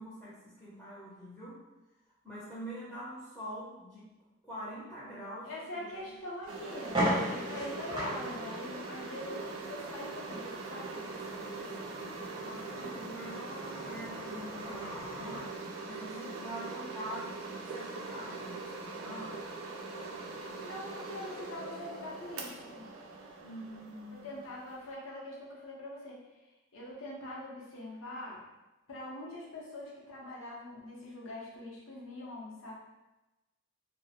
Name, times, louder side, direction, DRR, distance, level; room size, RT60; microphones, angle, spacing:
voice 1, 0.0-1.6 2.2-4.1 4.4-5.9 6.7-6.8 7.1-7.5 11.3-15.4 15.9-17.4 17.7-19.4 23.4-24.4, equal, 5° left, -11 dB, 0.6 m, -45 dB
voice 2, 5.4-11.0 20.6-22.9 24.2-26.2 26.7-28.4 28.9-32.7, left 1 dB, 80° left, -4 dB, 0.7 m, -43 dB
sound 1, 5.9-6.0 6.4-6.5 6.8-15.5, equal, 25° right, 0.8 m, -38 dB
sound 2, 6.5-24.9, right 3 dB, 85° right, 0.4 m, -42 dB
2.3 x 2.1 x 2.8 m, 1.0 s
head